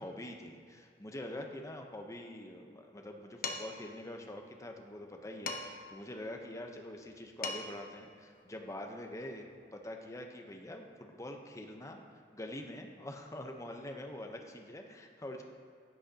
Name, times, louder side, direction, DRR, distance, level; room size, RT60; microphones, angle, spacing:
voice 1, 0.0-9.5 9.7-12.0 12.3-15.4, left 1 dB, 20° left, 3 dB, 0.7 m, -45 dB
Dishes pots and pans, 3.4-3.9 5.5-5.9 7.1-7.2 7.4-7.9, left 3 dB, 50° left, 0.9 m, -39 dB
15.0 x 6.4 x 2.8 m, 2.3 s
head